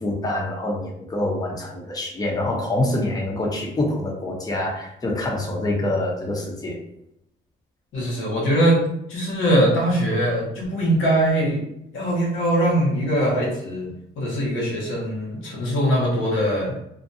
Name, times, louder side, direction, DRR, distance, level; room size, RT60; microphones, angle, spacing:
voice 1, 0.0-6.8, left 1 dB, 20° left, -1 dB, 0.7 m, -26 dB
voice 2, 7.9-8.8 9.1-11.6 11.9-13.9 14.2-16.7, right 1 dB, 85° left, -3 dB, 1.0 m, -21 dB
2.5 x 2.2 x 2.6 m, 0.78 s
cardioid pair, 90°, 20 cm